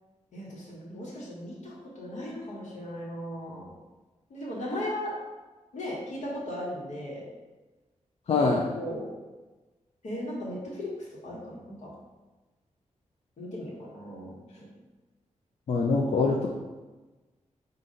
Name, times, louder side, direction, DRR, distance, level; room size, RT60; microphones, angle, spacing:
voice 1, 0.3-3.7 4.3-5.1 5.7-7.2 8.7-9.1 10.0-11.9 13.4-14.4, left 1 dB, 75° left, -4 dB, 1.4 m, -37 dB
voice 2, 8.3-8.7 15.7-16.5, left 3 dB, 55° left, -2 dB, 0.4 m, -24 dB
5.3 x 2.6 x 3.8 m, 1.2 s
wide cardioid pair, 150°, 13 cm